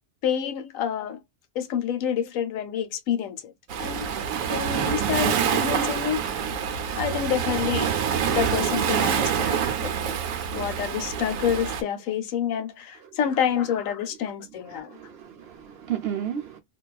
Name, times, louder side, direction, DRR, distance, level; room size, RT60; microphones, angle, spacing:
voice 1, 0.2-1.2 1.6-3.5 3.8-4.1 4.5-6.5 7.0-7.9 8.3-10.2 10.5-15.0, left 8 dB, 80° left, 1.0 m, -28 dB
Waves surf, 3.7-11.8, right 8 dB, 80° right, 1.0 m, -26 dB
voice 2, 14.7-16.6, right 10 dB, 60° right, 0.7 m, -33 dB
2.5 x 2.3 x 2.2 m
omnidirectional pair, 1.4 m